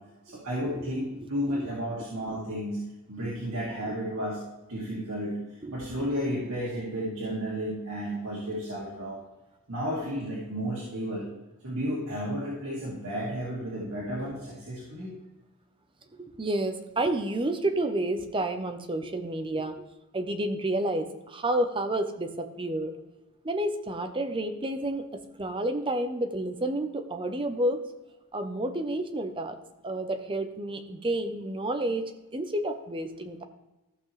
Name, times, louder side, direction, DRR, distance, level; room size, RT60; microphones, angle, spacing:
voice 1, 0.3-2.8 3.1-4.4 4.7-9.2 9.7-11.3 11.6-15.1, equal, 80° right, -6 dB, 2.2 m, -32 dB
voice 2, 16.2-19.8 20.1-22.9 23.4-27.9 28.3-29.6 29.8-32.0 32.3-33.4, right 1 dB, 25° right, 7 dB, 0.7 m, -30 dB
14.0 x 6.0 x 3.2 m, 1.0 s
head